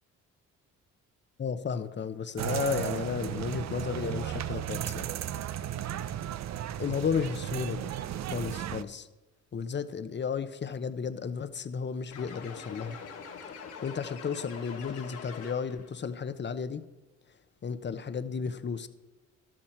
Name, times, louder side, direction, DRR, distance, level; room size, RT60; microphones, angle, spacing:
voice 1, 1.4-5.1 6.8-7.9 8.3-9.1 9.5-13.0 13.8-16.8 17.6-18.9, left 6 dB, 35° left, 12 dB, 0.9 m, -33 dB
sound 1, 2.4-8.8, right 11 dB, 60° right, 0.7 m, -35 dB
sound 2, 12.1-15.9, left 5 dB, 90° left, 2.6 m, -44 dB
13.0 x 12.0 x 4.5 m, 1.1 s
cardioid pair, 90°, 30 cm